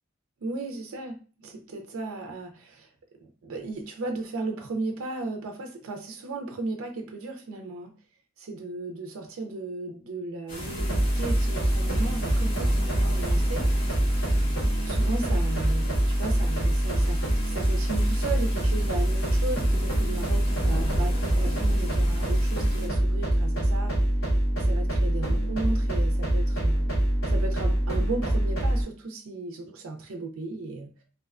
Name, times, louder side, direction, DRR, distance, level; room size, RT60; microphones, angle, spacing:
voice 1, 0.4-1.1 1.4-2.9 3.2-7.9 8.4-13.7 14.9-24.0 24.5-26.9 27.3-31.0, right 2 dB, 70° right, 3 dB, 0.4 m, -35 dB
sound 1, 10.5-22.9, equal, 90° left, 1.3 m, -38 dB
sound 2, 10.8-28.8, right 1 dB, 60° left, 1.4 m, -24 dB
2.6 x 2.1 x 2.4 m, 0.38 s
head